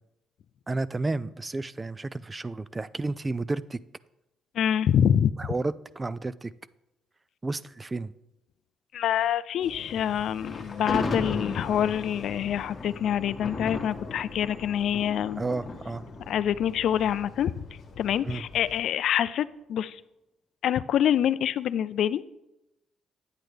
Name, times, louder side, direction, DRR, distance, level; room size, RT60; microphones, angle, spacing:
voice 1, 0.7-3.8 5.4-6.5 7.4-8.1 15.4-16.0 18.2-18.4, right 3 dB, 25° right, 17 dB, 0.3 m, -31 dB
voice 2, 4.6-5.3 8.9-15.4 16.3-17.5 18.0-20.0 20.6-22.2, left 9 dB, 75° left, 16 dB, 0.3 m, -26 dB
sound 1, 9.6-18.8, left 3 dB, 55° left, 1.3 m, -45 dB
Thunder, 10.4-17.6, left 3 dB, 35° left, 1.3 m, -36 dB
9.1 x 8.8 x 3.3 m, 0.90 s
cardioid pair, 90°, 0 cm